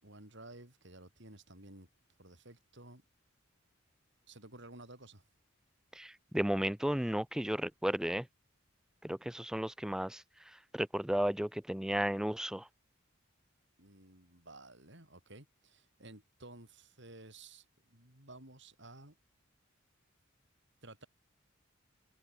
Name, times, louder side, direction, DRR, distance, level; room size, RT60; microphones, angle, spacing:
voice 1, 0.0-1.9 2.2-3.0 4.3-5.2 13.8-19.1 20.8-21.1, right 2 dB, 55° right, 6.5 m, -54 dB
voice 2, 6.0-8.3 9.0-10.2 10.7-12.7, equal, 5° right, 0.4 m, -33 dB
head